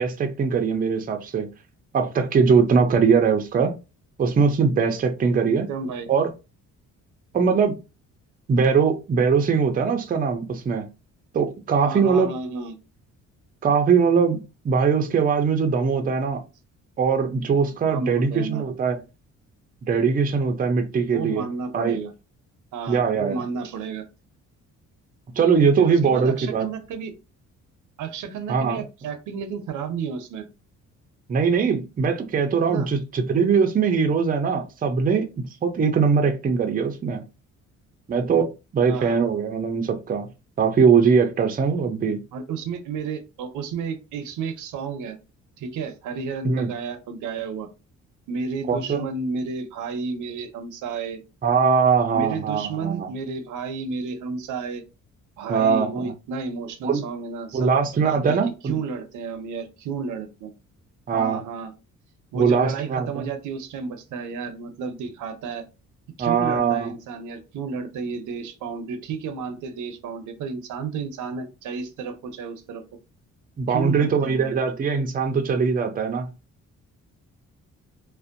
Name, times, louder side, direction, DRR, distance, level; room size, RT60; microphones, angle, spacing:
voice 1, 0.0-1.5 1.9-3.7 4.2-5.7 6.1-6.3 7.3-7.8 8.5-10.9 11.3-12.3 13.6-14.4 14.6-16.4 17.0-19.0 19.8-21.5 21.7-22.0 22.9-23.4 25.4-26.7 28.5-28.8 31.3-35.3 35.6-37.2 38.1-38.5 38.7-40.3 40.6-42.2 46.4-46.7 48.7-49.0 51.4-53.1 55.5-56.1 56.8-57.0 57.5-58.8 61.1-61.4 62.3-63.2 66.2-66.9 73.6-76.3, right 5 dB, 30° right, 0.5 m, -21 dB
voice 2, 5.5-6.1 11.8-12.8 17.7-18.7 21.1-22.1 22.7-24.0 25.8-27.1 28.0-30.5 32.6-32.9 38.9-39.2 42.3-45.2 45.6-47.7 48.3-51.2 52.1-54.8 55.4-57.7 58.0-58.4 58.6-60.5 61.1-61.7 62.3-65.6 66.2-72.8 73.7-74.7, right 5 dB, 80° right, 0.6 m, -32 dB
2.5 x 2.1 x 2.5 m
cardioid pair, 90°, 30 cm